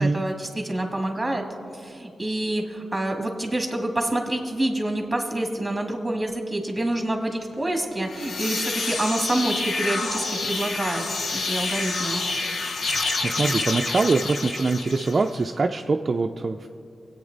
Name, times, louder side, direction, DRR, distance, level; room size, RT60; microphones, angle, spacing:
voice 1, 0.0-1.5 1.7-11.1 11.3-12.2, right 1 dB, 10° right, 2 dB, 1.9 m, -27 dB
sound 1, 8.0-15.4, left 3 dB, 65° left, 0.9 m, -28 dB
voice 2, 12.9-16.7, right 3 dB, 40° right, 4 dB, 0.4 m, -24 dB
23.0 x 8.7 x 3.9 m, 2.5 s
wide cardioid pair, 105°, 0 cm